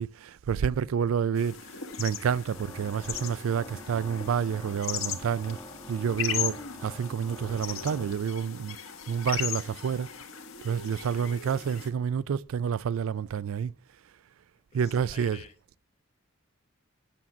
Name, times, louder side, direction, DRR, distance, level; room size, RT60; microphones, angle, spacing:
voice 1, 0.0-1.7 2.0-5.6 5.9-8.8 9.1-10.1 10.6-13.7 14.7-15.5, right 7 dB, 80° right, 0.4 m, -29 dB
sound 1, 1.4-11.9, left 9 dB, 85° left, 1.5 m, -38 dB
Organ, 2.0-8.6, equal, 15° left, 1.2 m, -47 dB
voice 2, 14.7-15.5, left 5 dB, 30° left, 0.9 m, -48 dB
8.7 x 7.2 x 6.0 m
head